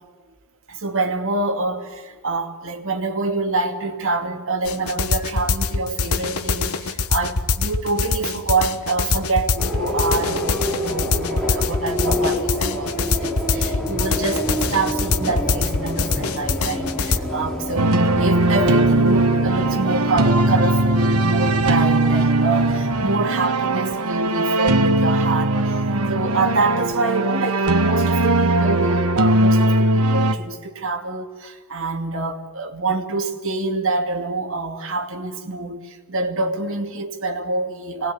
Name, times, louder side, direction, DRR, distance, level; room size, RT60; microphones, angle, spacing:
voice 1, 0.7-38.1, right 3 dB, 65° right, 2.7 m, -26 dB
sound 1, 4.6-17.2, left 4 dB, 80° left, 1.4 m, -23 dB
sound 2, 9.6-23.2, left 1 dB, ahead, 4.1 m, -28 dB
sound 3, 17.8-30.3, right 2 dB, 85° right, 1.4 m, -19 dB
26.0 x 20.0 x 8.6 m
head